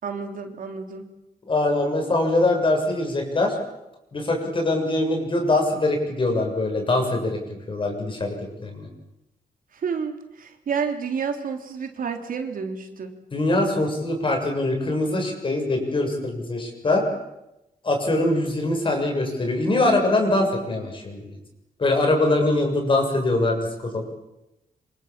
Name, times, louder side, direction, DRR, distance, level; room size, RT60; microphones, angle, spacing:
voice 1, 0.0-1.1 9.7-13.1, right 6 dB, 65° right, 5 dB, 3.6 m, -30 dB
voice 2, 1.5-3.6 4.1-7.4 7.7-8.9 13.3-17.0 17.8-21.2 21.8-24.1, left 2 dB, 35° left, 3 dB, 7.4 m, -23 dB
27.0 x 26.5 x 7.6 m, 0.92 s
wide cardioid pair, 140°, 15 cm